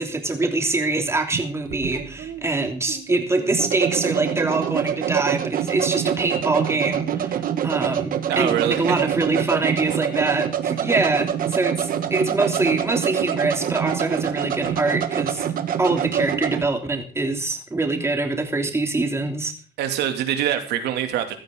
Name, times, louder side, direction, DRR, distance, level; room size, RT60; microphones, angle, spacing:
voice 1, 0.0-15.5 15.8-19.5, right 2 dB, 15° right, 4 dB, 3.1 m, -24 dB
sound 1, 1.3-16.7, right 9 dB, 55° right, 1.6 m, -26 dB
voice 2, 8.3-8.9 19.8-21.4, right 10 dB, 80° right, 6 dB, 2.7 m, -24 dB
16.0 x 12.5 x 3.9 m, 0.38 s
cardioid pair, 110°, 17 cm